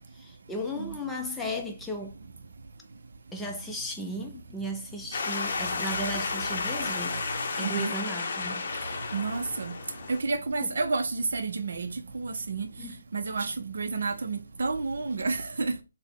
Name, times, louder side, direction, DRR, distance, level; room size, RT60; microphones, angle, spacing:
voice 1, 0.1-2.1 3.3-7.2 7.6-8.6 10.6-10.7 12.8-12.9, equal, 5° left, 0.4 m, -35 dB
sound 1, 5.1-10.2, left 4 dB, 50° left, 0.6 m, -32 dB
voice 2, 7.6-7.9 9.1-9.7 10.1-11.9 12.1-12.7 13.1-15.7, right 4 dB, 60° right, 0.5 m, -30 dB
3.5 x 2.0 x 3.7 m
figure-of-eight pair, 150°, 0 cm